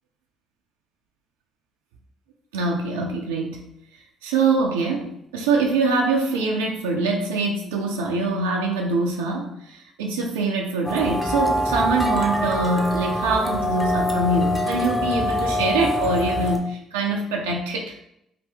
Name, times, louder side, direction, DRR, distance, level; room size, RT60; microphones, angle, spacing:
voice 1, 2.5-3.6 4.2-18.0, right 3 dB, 90° right, 0 dB, 0.4 m, -24 dB
sound 1, 10.8-16.6, equal, 10° left, 0.6 m, -24 dB
2.8 x 2.6 x 3.3 m, 0.78 s
hypercardioid pair, 55°, 0 cm